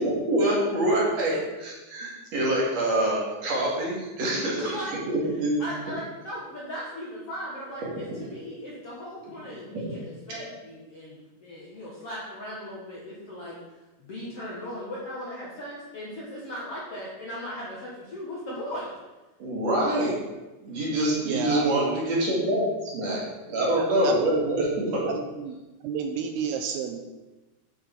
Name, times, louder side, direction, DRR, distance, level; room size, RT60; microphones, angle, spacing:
voice 1, 0.0-1.3 1.9-4.7 5.1-5.6 9.7-9.9 19.4-20.2 20.6-25.1, right 1 dB, 45° right, -4 dB, 2.8 m, -25 dB
voice 2, 4.4-5.0 5.6-13.6 14.0-18.9, equal, 55° left, -6 dB, 1.7 m, -37 dB
voice 3, 21.2-22.0 23.8-24.5 25.1-25.6 25.8-27.0, right 7 dB, 80° right, 5 dB, 2.5 m, -31 dB
9.7 x 5.9 x 5.8 m, 1.1 s
omnidirectional pair, 4.9 m